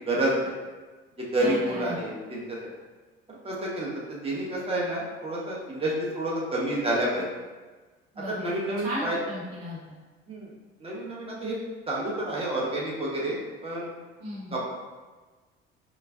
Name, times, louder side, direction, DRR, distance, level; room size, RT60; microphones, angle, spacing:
voice 1, 0.1-0.5 1.2-2.6 3.4-7.3 8.3-9.2 10.3-10.5 10.8-11.6 11.9-13.4 13.6-13.9 14.5-14.7, right 1 dB, 20° right, -4 dB, 1.0 m, -29 dB
voice 2, 1.4-2.0 8.1-9.9 14.2-14.6, equal, 70° right, -5 dB, 1.1 m, -36 dB
4.4 x 2.2 x 2.6 m, 1.3 s
figure-of-eight pair, 55°, 31 cm